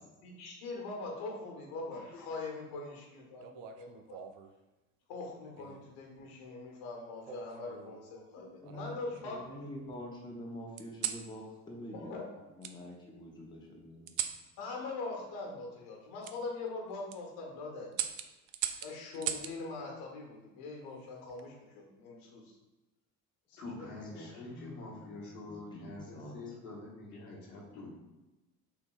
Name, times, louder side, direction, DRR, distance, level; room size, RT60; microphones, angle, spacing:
voice 1, 0.2-4.3 5.1-9.6 11.9-12.2 14.6-18.0 18.8-22.4 23.5-23.9, left 3 dB, 55° left, 0 dB, 1.2 m, -42 dB
voice 2, 1.9-2.2 23.6-27.9, left 2 dB, 75° left, -4 dB, 1.3 m, -46 dB
sound 1, 3.4-4.5 5.6-6.0 7.2-8.0 8.6-9.5 10.8-11.3 12.6-12.8 14.1-14.4 16.2-16.4 16.9-17.2 17.9-19.6 21.1-21.5, right 10 dB, 60° right, 0.5 m, -39 dB
voice 3, 8.4-12.2 12.5-14.1 24.1-26.4, equal, 10° left, -1 dB, 0.8 m, -47 dB
6.1 x 2.8 x 2.3 m, 1.1 s
figure-of-eight pair, 60°, 45 cm